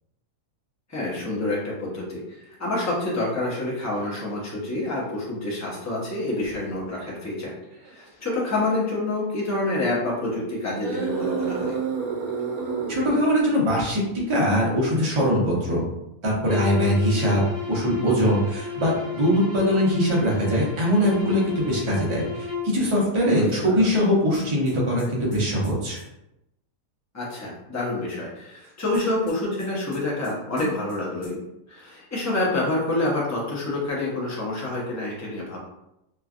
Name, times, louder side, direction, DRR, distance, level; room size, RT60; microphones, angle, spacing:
voice 1, 0.9-7.5 7.9-11.8 23.2-23.9 27.1-31.4 31.7-35.6, left 2 dB, 20° left, -5 dB, 0.4 m, -27 dB
sound 1, 3.9-4.1 4.8-4.9 6.4-6.6 7.6-7.9 8.5-8.7 10.8-13.4, right 5 dB, 80° right, 1.1 m, -29 dB
voice 2, 12.9-15.8 16.2-17.4 17.7-26.0, equal, 30° right, -4 dB, 0.5 m, -22 dB
sound 2, 16.4-22.8, left 6 dB, 50° right, 0.9 m, -33 dB
sound 3, 24.3-26.0 28.9-30.3 30.6-31.0 31.2-31.3, left 1 dB, 40° left, 0.8 m, -39 dB
3.1 x 2.3 x 2.4 m, 0.87 s
omnidirectional pair, 1.5 m